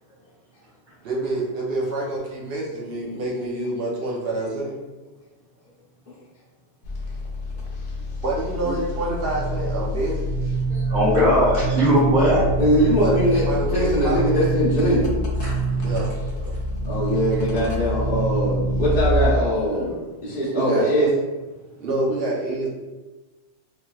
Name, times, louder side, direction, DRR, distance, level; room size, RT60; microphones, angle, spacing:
voice 1, 1.0-4.7 8.2-10.3 13.0-14.4 15.8-16.5 20.5-20.9 21.8-22.7, right 2 dB, 65° right, -4 dB, 0.8 m, -27 dB
sound 1, 6.8-19.3, right 1 dB, 80° left, 0.9 m, -25 dB
voice 2, 10.7-12.5 15.4-15.6, equal, 45° right, -9 dB, 1.4 m, -19 dB
voice 3, 12.6-15.2 16.8-19.9 20.2-21.1, equal, 45° left, -9 dB, 0.8 m, -21 dB
3.0 x 2.8 x 2.2 m, 1.2 s
omnidirectional pair, 1.2 m